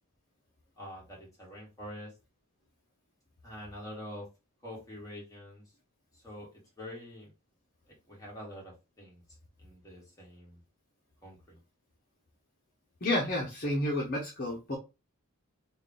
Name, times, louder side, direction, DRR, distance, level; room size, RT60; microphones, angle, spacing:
voice 1, 0.8-2.1 3.4-4.3 4.6-5.6 6.1-7.3 8.1-9.2 9.6-10.6 11.2-11.6, left 1 dB, 15° left, -4 dB, 1.8 m, -45 dB
voice 2, 13.0-14.8, left 1 dB, 40° left, -1 dB, 0.7 m, -30 dB
3.5 x 2.4 x 3.7 m, 0.27 s
head